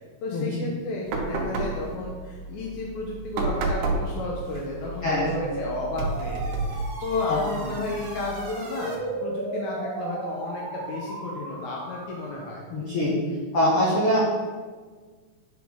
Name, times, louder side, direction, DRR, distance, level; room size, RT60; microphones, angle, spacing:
voice 1, 0.2-12.6, left 3 dB, 75° left, -2 dB, 1.8 m, -32 dB
sound 1, 1.1-8.5, right 3 dB, 75° right, 2.2 m, -32 dB
sound 2, 5.1-12.6, right 2 dB, 60° right, 1.5 m, -35 dB
voice 2, 12.7-13.1 13.5-14.2, left 1 dB, 55° left, -7 dB, 1.6 m, -23 dB
9.1 x 4.2 x 3.5 m, 1.5 s
omnidirectional pair, 4.0 m